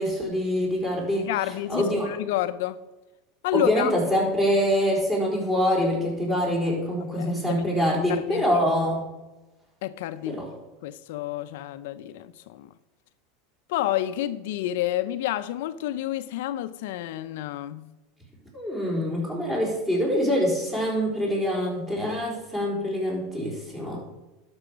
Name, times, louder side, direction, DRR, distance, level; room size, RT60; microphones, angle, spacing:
voice 1, 0.0-1.3 1.7-2.1 3.5-9.0 10.3-10.5 18.5-24.0, equal, 15° right, 4.2 m, -25 dB
voice 2, 1.2-2.8 3.4-3.9 7.2-7.6 8.1-8.6 9.8-10.4 10.8-12.7 13.7-17.9, left 13 dB, 75° left, 0.5 m, -29 dB
11.5 x 6.3 x 5.1 m
supercardioid pair, 130°, 0 cm